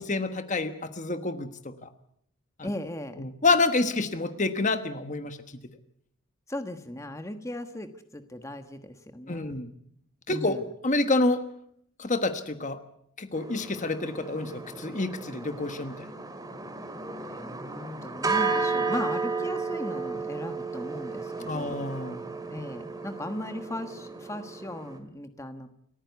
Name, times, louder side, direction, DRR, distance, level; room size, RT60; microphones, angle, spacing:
voice 1, 0.0-1.9 2.6-2.7 3.2-5.4 9.3-9.7 10.3-11.4 12.0-12.8 13.2-15.9 21.4-22.2, left 3 dB, 35° left, 9 dB, 1.3 m, -28 dB
voice 2, 2.6-3.2 6.5-9.6 10.3-10.7 17.2-21.8 22.5-25.7, left 1 dB, 15° left, 7 dB, 1.3 m, -37 dB
sound 1, 13.4-25.0, right 4 dB, 15° right, 2.3 m, -33 dB
29.0 x 14.5 x 8.2 m, 0.71 s
head